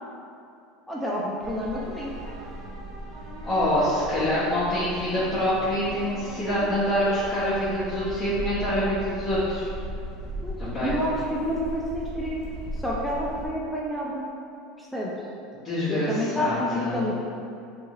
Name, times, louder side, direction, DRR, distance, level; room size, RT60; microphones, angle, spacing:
voice 1, 0.9-2.1 10.4-12.4 12.8-14.3 14.8-15.1 15.9-17.1, equal, 5° left, -5 dB, 0.4 m, -29 dB
sound 1, 1.4-13.5, equal, 50° right, 0.6 m, -37 dB
voice 2, 3.4-9.7 10.6-11.0 15.6-17.1, equal, 30° left, -12 dB, 0.8 m, -26 dB
2.7 x 2.5 x 2.7 m, 2.6 s
hypercardioid pair, 80°, 0 cm